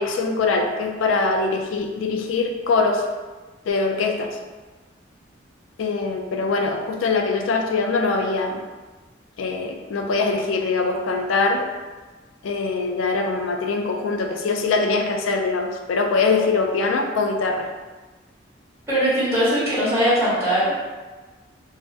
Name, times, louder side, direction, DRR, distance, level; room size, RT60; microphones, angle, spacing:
voice 1, 0.0-3.1 3.7-4.4 5.8-8.6 9.4-11.6 12.4-17.7, left 3 dB, 90° left, 3 dB, 0.4 m, -23 dB
voice 2, 18.9-20.7, equal, 15° right, -12 dB, 1.0 m, -20 dB
2.7 x 2.1 x 3.4 m, 1.3 s
head